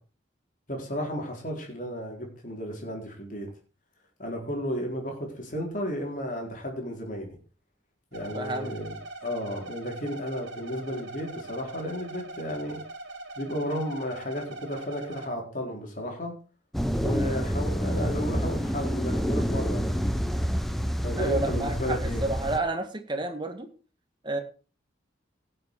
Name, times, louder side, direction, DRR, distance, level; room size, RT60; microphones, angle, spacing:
voice 1, 0.7-3.5 4.2-7.3 8.1-9.0 9.2-12.8 13.4-16.3 17.0-19.9 21.0-22.2, equal, 45° left, 0 dB, 4.4 m, -33 dB
sound 1, 8.1-15.3, right 2 dB, 75° right, 2.6 m, -41 dB
voice 2, 8.3-8.8 17.0-17.1 21.2-23.7 24.2-24.4, right 2 dB, 25° right, 6 dB, 1.8 m, -30 dB
sound 2, 16.7-22.6, equal, ahead, 0.9 m, -28 dB
16.5 x 7.6 x 4.9 m, 0.36 s
head